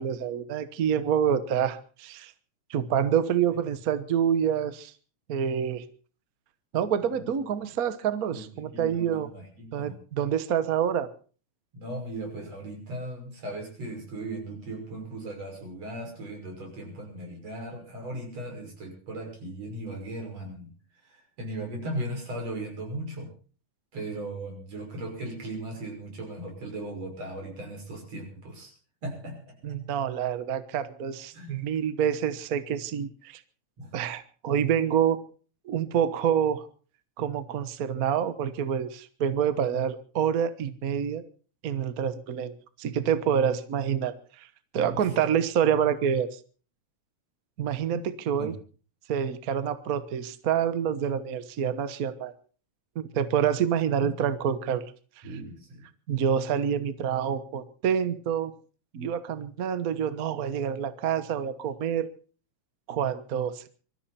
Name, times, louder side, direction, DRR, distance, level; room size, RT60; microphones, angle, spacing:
voice 1, 0.0-2.3 2.7-4.9 5.3-5.8 6.7-9.3 9.7-11.1 29.6-33.4 33.9-35.2 35.6-36.7 37.2-41.2 41.6-42.5 42.8-44.5 44.7-46.4 47.6-48.5 49.1-52.3 52.9-54.9 56.1-58.5 58.9-62.1 62.9-63.7, right 8 dB, 80° right, 12 dB, 0.8 m, -27 dB
voice 2, 7.0-7.4 8.3-8.4 8.7-10.0 11.7-20.7 21.0-23.3 23.9-28.7 29.0-29.5 31.3-31.6 33.8-33.9 44.8-45.1 47.9-48.0 48.4-48.5 54.0-54.1 55.2-55.8, right 1 dB, 55° right, 2 dB, 7.1 m, -37 dB
24.0 x 13.5 x 4.3 m, 0.40 s
omnidirectional pair, 3.4 m